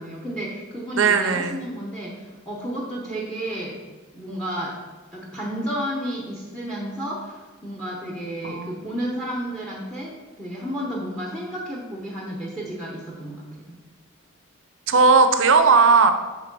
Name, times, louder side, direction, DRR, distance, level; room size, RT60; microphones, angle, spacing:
voice 1, 0.0-3.8 4.1-4.8 5.1-13.3 13.7-13.8, equal, 5° left, -2 dB, 0.8 m, -32 dB
voice 2, 1.0-1.6 8.4-8.9 14.9-16.1, right 4 dB, 70° right, 8 dB, 0.6 m, -17 dB
6.8 x 3.8 x 6.0 m, 1.3 s
head